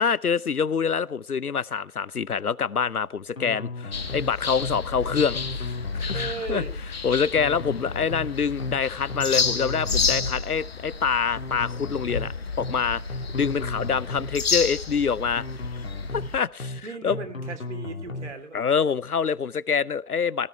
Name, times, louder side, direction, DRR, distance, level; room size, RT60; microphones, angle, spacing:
voice 1, 0.0-6.6 7.0-12.3 12.6-13.0 13.3-15.4 16.1-17.2 18.5-20.5, left 6 dB, 85° left, 0.7 m, -26 dB
sound 1, 3.4-4.3 4.6-4.8 5.1-6.3 7.4-8.3 8.6-8.8 9.1-10.3 11.4-12.3 12.6-12.8 13.1-14.3 15.4-16.3 16.6-16.8 17.1-18.3, left 2 dB, 65° left, 1.9 m, -35 dB
sound 2, 3.9-16.4, left 5 dB, 45° left, 1.4 m, -31 dB
voice 2, 6.1-6.7 16.8-18.7, right 3 dB, 50° right, 3.1 m, -36 dB
18.0 x 12.5 x 4.5 m
figure-of-eight pair, 145°, 43 cm